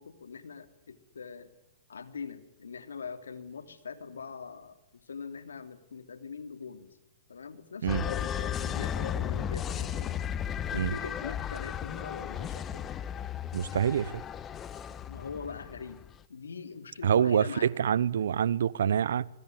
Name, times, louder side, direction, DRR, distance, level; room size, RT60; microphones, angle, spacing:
voice 1, 0.0-1.5 1.9-7.0 7.3-10.2 10.7-12.9 15.1-16.0 16.3-17.7, left 5 dB, 85° left, 3.0 m, -42 dB
sound 1, 7.9-16.1, left 9 dB, 25° left, 1.2 m, -35 dB
voice 2, 13.5-14.2 17.0-19.3, right 8 dB, 75° right, 1.0 m, -26 dB
25.0 x 22.0 x 9.5 m
hypercardioid pair, 125°, 0 cm